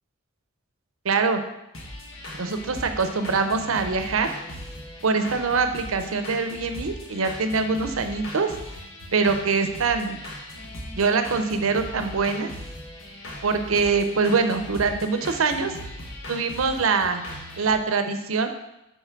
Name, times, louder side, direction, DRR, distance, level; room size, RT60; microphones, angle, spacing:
voice 1, 1.0-1.4 2.4-4.3 5.0-8.5 9.1-10.2 10.9-12.5 13.4-15.8 16.3-17.2 17.6-18.5, right 4 dB, 85° right, 8 dB, 0.6 m, -24 dB
sound 1, 1.7-17.7, left 1 dB, 75° left, 1.4 m, -39 dB
5.8 x 4.3 x 5.8 m, 0.91 s
head